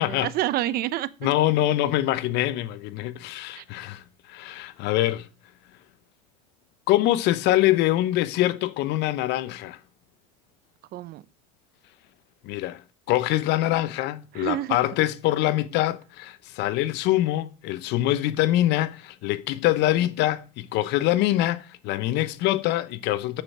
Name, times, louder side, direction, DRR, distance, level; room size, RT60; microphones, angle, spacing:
voice 1, 0.0-1.3 3.5-3.6 10.9-11.2 14.3-14.8, right 14 dB, 50° right, 0.7 m, -28 dB
voice 2, 1.2-4.0 4.3-5.3 6.9-9.8 12.4-12.8 13.1-23.4, left 15 dB, 55° left, 0.9 m, -24 dB
7.0 x 6.8 x 6.0 m
supercardioid pair, 100°, 20 cm